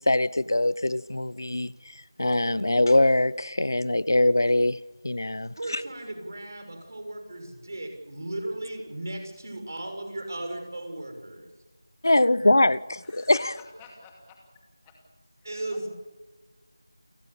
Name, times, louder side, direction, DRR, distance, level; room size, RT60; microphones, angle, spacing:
voice 1, 0.0-1.7 2.2-4.8 5.0-5.8 12.0-13.4, left 1 dB, 65° left, 0.9 m, -22 dB
voice 2, 5.6-11.5 15.4-15.9, right 1 dB, 50° right, 6.3 m, -36 dB
voice 3, 13.0-14.4 14.8-15.0 15.4-15.8, left 3 dB, 10° left, 2.4 m, -47 dB
29.5 x 17.0 x 7.1 m
figure-of-eight pair, 175°, 2 cm